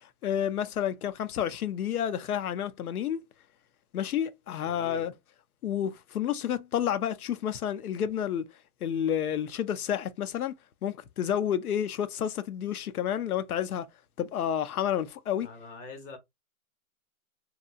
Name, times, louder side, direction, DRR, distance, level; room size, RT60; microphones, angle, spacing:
voice 1, 0.0-3.2 3.9-5.1 5.6-8.5 8.8-10.6 10.8-13.9 14.2-15.5, left 9 dB, 85° left, 0.6 m, -30 dB
voice 2, 4.6-5.0 15.4-16.2, left 3 dB, 15° left, 0.8 m, -44 dB
2.8 x 2.4 x 2.3 m
hypercardioid pair, 130°, 43 cm